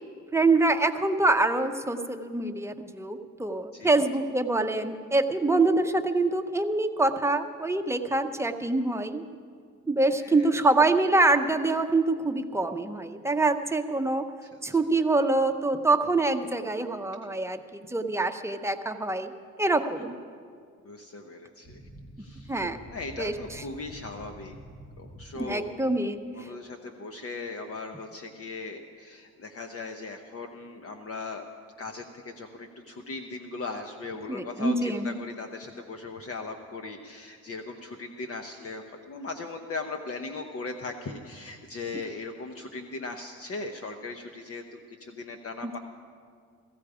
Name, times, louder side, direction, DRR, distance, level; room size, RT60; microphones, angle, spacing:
voice 1, 0.3-9.2 9.9-14.2 14.6-19.3 19.6-20.2 22.5-22.8 23.2-23.3 25.3-26.2 34.3-35.2 45.6-45.8, right 2 dB, 10° right, 6 dB, 0.9 m, -25 dB
voice 2, 3.7-4.0 10.2-10.5 14.4-14.8 20.8-21.8 22.2-22.6 22.9-24.6 25.0-25.7 26.3-31.4 31.8-45.8, left 3 dB, 50° left, 5 dB, 1.0 m, -38 dB
sound 1, 21.6-25.9, right 1 dB, 25° left, 1.8 m, -47 dB
17.0 x 15.0 x 5.0 m, 2.1 s
cardioid pair, 90°, 30 cm